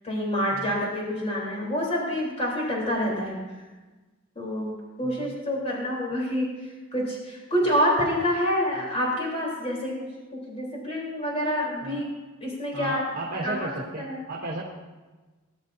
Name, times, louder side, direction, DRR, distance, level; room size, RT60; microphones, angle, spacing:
voice 1, 0.0-3.6 4.4-4.7 5.0-6.5 6.9-10.1 10.5-12.1 12.4-13.0 13.4-13.7 14.0-14.2, equal, 30° left, -4 dB, 3.8 m, -27 dB
voice 2, 12.7-14.6, right 2 dB, 45° right, -4 dB, 1.7 m, -34 dB
19.5 x 11.5 x 2.8 m, 1.2 s
head